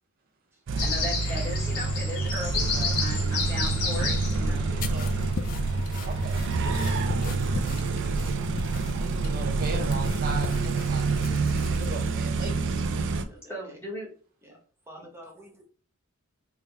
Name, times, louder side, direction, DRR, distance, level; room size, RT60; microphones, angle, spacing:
sound 1, 0.7-13.2, right 3 dB, 60° right, 0.4 m, -27 dB
sound 2, 0.8-7.3, left 4 dB, 85° left, 0.9 m, -33 dB
voice 1, 0.8-4.8 13.5-14.1 14.5-14.6, equal, 10° left, 1.2 m, -37 dB
voice 2, 4.3-5.1 13.0-13.8 14.4-14.6 14.9-15.7, equal, 10° right, 1.0 m, -49 dB
sound 3, 4.8-12.2, left 4 dB, 40° left, 0.3 m, -38 dB
voice 3, 4.9-5.3 6.0-6.5 8.9-11.2 11.7-13.1, right 2 dB, 45° right, 0.8 m, -38 dB
3.5 x 2.2 x 3.3 m
head